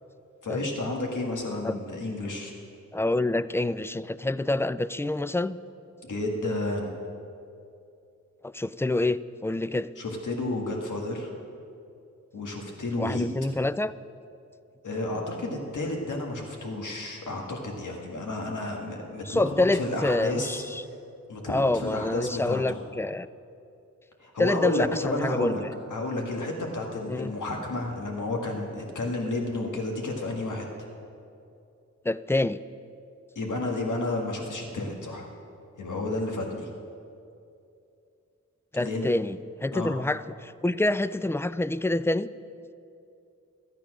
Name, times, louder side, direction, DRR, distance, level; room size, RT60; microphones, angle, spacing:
voice 1, 0.4-2.5 6.0-6.9 10.0-11.3 12.3-13.3 14.8-20.6 21.3-22.8 24.2-25.6 25.9-30.7 33.4-35.3 35.8-36.7 38.8-39.1 39.7-39.9, left 2 dB, 80° left, 1 dB, 1.8 m, -31 dB
voice 2, 2.9-5.6 8.4-9.9 13.0-13.9 19.3-20.8 21.5-23.3 24.4-25.7 27.1-27.3 32.0-32.6 38.7-42.3, left 2 dB, 10° left, 16 dB, 0.3 m, -27 dB
13.0 x 8.8 x 6.2 m, 2.6 s
cardioid pair, 45°, 30 cm